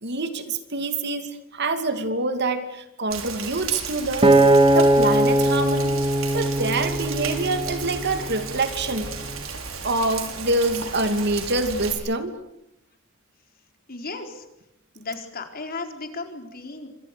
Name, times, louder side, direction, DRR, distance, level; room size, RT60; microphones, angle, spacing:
voice 1, 0.0-4.4 4.7-6.0 6.3-9.1 9.8-12.3, right 2 dB, 55° right, 8 dB, 2.6 m, -26 dB
Rain, 3.1-11.9, right 5 dB, 75° right, 6.1 m, -34 dB
Acoustic guitar, 4.2-8.6 9.2-9.4, right 1 dB, 25° right, 2.4 m, -20 dB
voice 2, 13.9-14.5 14.9-16.9, left 3 dB, 45° left, 5 dB, 4.3 m, -35 dB
28.5 x 26.0 x 6.9 m, 0.84 s
head